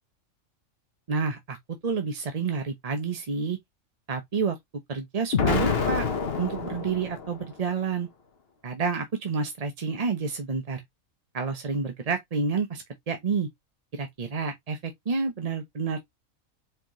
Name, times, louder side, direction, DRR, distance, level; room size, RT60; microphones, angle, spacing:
voice 1, 1.1-3.6 4.1-4.6 4.9-6.0 6.4-8.1 8.6-10.8 11.3-13.5 13.9-16.0, right 5 dB, 35° right, 0.6 m, -29 dB
Explosion, 5.3-7.5, left 5 dB, 50° left, 1.2 m, -27 dB
4.5 x 3.8 x 3.0 m
omnidirectional pair, 1.5 m